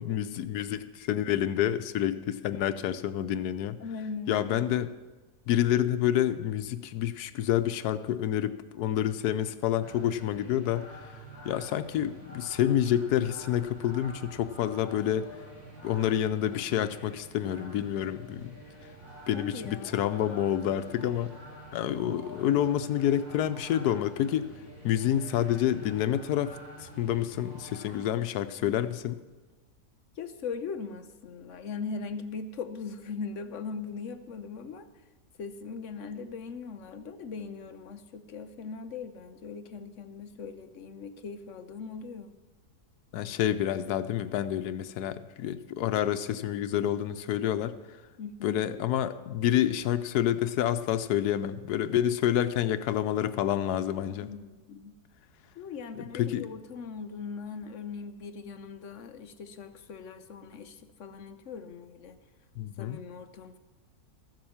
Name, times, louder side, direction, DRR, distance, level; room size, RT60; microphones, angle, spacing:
voice 1, 0.0-3.8 4.3-4.9 5.5-11.1 11.4-15.3 15.8-18.6 19.3-21.3 21.7-24.5 24.8-29.2 43.1-47.8 48.4-54.3 56.0-56.5 62.6-63.0, left 11 dB, 80° left, 12 dB, 1.2 m, -28 dB
voice 2, 3.8-4.5 19.3-20.0 30.2-34.9 35.4-42.4 48.2-48.6 54.1-55.0 55.6-62.2 62.8-63.6, left 5 dB, 60° left, 9 dB, 1.0 m, -40 dB
sound 1, 9.8-28.1, right 1 dB, 45° right, 5.1 m, -48 dB
14.0 x 7.9 x 7.1 m, 1.3 s
omnidirectional pair, 1.7 m